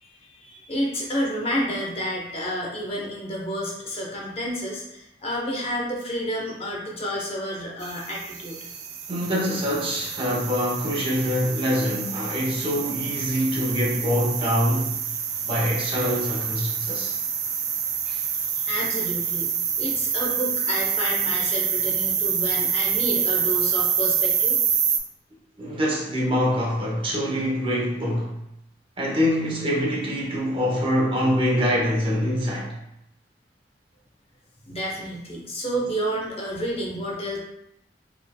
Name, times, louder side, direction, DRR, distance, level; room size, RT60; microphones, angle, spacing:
voice 1, 0.0-8.6 18.0-18.3 18.5-24.6 34.6-37.4, equal, 35° left, 0.8 m, -30 dB
sound 1, 7.8-25.0, right 7 dB, 65° right, 0.5 m, -27 dB
voice 2, 9.1-14.9 15.4-17.2 25.6-28.3 29.0-32.7, equal, 30° right, 0.9 m, -24 dB
4.2 x 3.4 x 2.2 m
head